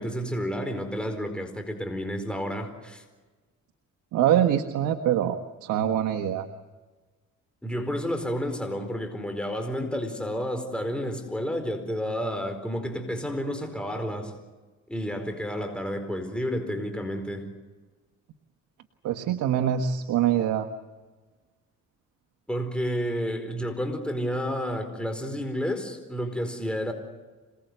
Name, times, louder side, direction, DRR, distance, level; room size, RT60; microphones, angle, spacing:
voice 1, 0.0-3.0 7.6-14.3 14.9-17.5 22.5-26.9, equal, 5° left, 5 dB, 4.6 m, -30 dB
voice 2, 4.1-6.5 19.0-20.7, right 10 dB, 85° right, 6 dB, 1.6 m, -24 dB
27.0 x 20.0 x 8.1 m, 1.3 s
cardioid pair, 90°, 30 cm